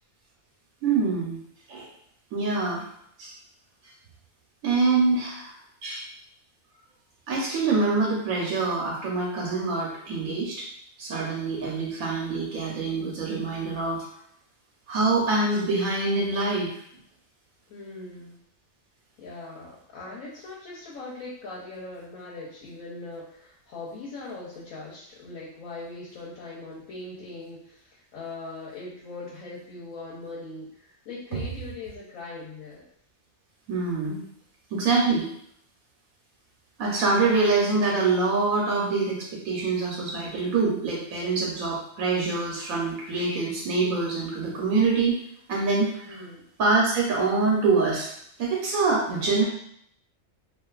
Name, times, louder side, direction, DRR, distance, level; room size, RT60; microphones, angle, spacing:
voice 1, 0.8-1.4 1.7-1.9 2.3-2.8 3.2-3.3 4.6-5.5 5.8-6.1 7.3-10.6 11.0-14.0 14.9-16.7 31.3-31.4 33.7-34.2 34.7-35.3 36.8-45.2 45.5-46.2 46.6-48.1 48.4-49.4, right 3 dB, 90° right, -3 dB, 1.1 m, -25 dB
voice 2, 17.7-18.4 19.2-32.8 46.0-46.4 49.0-49.3, left 3 dB, 85° left, -6 dB, 1.1 m, -40 dB
2.4 x 2.4 x 2.3 m, 0.69 s
omnidirectional pair, 1.4 m